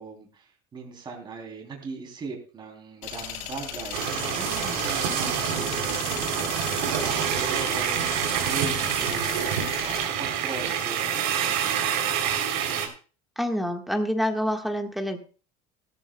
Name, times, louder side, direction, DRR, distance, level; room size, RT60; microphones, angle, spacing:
voice 1, 0.0-11.9, right 4 dB, 25° right, 2 dB, 3.2 m, -40 dB
sound 1, 3.0-10.1, left 8 dB, 90° left, 7.7 m, -37 dB
sound 2, 3.9-12.9, right 8 dB, 90° right, 3.3 m, -27 dB
voice 2, 13.4-15.2, equal, ahead, 4 dB, 1.4 m, -27 dB
17.0 x 13.5 x 2.2 m, 0.36 s
cardioid pair, 155°, 18 cm